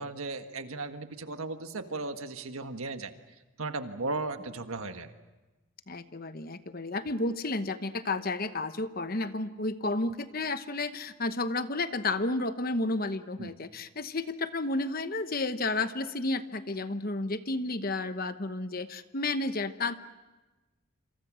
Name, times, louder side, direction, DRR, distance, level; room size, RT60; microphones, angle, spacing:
voice 1, 0.0-3.1 3.6-5.1 13.4-13.5, right 3 dB, 80° right, 7 dB, 1.6 m, -36 dB
voice 2, 5.9-19.9, left 2 dB, 45° left, 11 dB, 1.0 m, -32 dB
27.5 x 27.0 x 6.3 m, 1.2 s
head